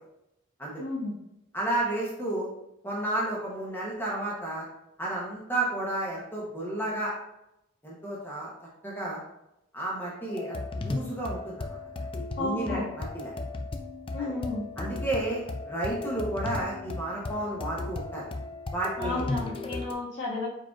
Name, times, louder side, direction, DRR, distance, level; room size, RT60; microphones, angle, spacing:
voice 1, 0.8-1.2 12.4-12.9 14.1-14.6 19.0-20.5, left 2 dB, 70° left, -7 dB, 1.7 m, -32 dB
voice 2, 1.5-2.5 2.8-4.7 5.0-7.1 7.8-8.5 8.8-9.2 9.7-11.8 12.4-13.3 14.2-14.3 14.8-18.3 18.7-19.3, right 1 dB, 10° left, -5 dB, 0.8 m, -32 dB
sound 1, 10.3-19.9, left 2 dB, 25° left, 0.3 m, -36 dB
4.8 x 4.4 x 2.4 m, 0.86 s
head